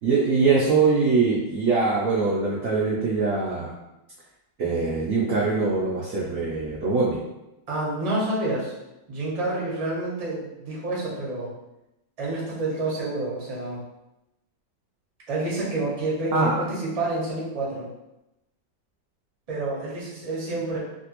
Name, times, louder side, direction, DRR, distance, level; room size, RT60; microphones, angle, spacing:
voice 1, 0.0-3.7 4.6-7.2 16.3-16.5, right 4 dB, 75° right, -4 dB, 0.7 m, -22 dB
voice 2, 7.7-8.7 9.1-11.5 12.2-13.8 15.3-17.9 19.5-20.8, right 2 dB, 35° right, -5 dB, 0.6 m, -28 dB
3.2 x 2.6 x 2.9 m, 0.93 s
omnidirectional pair, 2.0 m